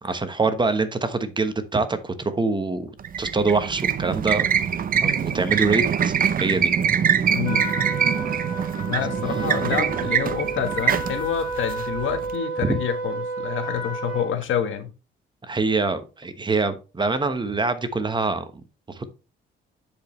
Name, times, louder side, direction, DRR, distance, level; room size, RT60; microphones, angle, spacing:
voice 1, 0.0-2.9 3.2-4.5 5.0-6.7 12.6-12.8 15.5-18.4 18.9-19.1, right 3 dB, 25° right, 1.1 m, -24 dB
sound 1, 3.0-12.3, right 8 dB, 45° right, 0.7 m, -24 dB
voice 2, 7.3-7.7 8.9-14.9, left 9 dB, 75° left, 1.4 m, -27 dB
Trumpet, 7.4-14.3, right 2 dB, 25° left, 3.8 m, -31 dB
10.0 x 5.1 x 3.1 m
cardioid pair, 90°, 20 cm